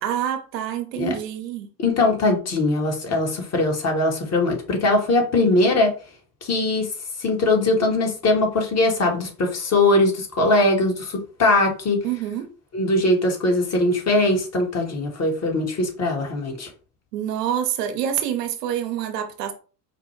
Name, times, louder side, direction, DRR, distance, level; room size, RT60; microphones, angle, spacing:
voice 1, 0.0-1.7 12.0-12.5 17.1-19.5, right 10 dB, 85° right, 0.9 m, -26 dB
voice 2, 1.8-5.9 6.4-6.9 7.2-12.0 12.7-16.7, left 2 dB, 35° left, 1.5 m, -21 dB
4.8 x 2.3 x 3.2 m
hypercardioid pair, 90°, 47 cm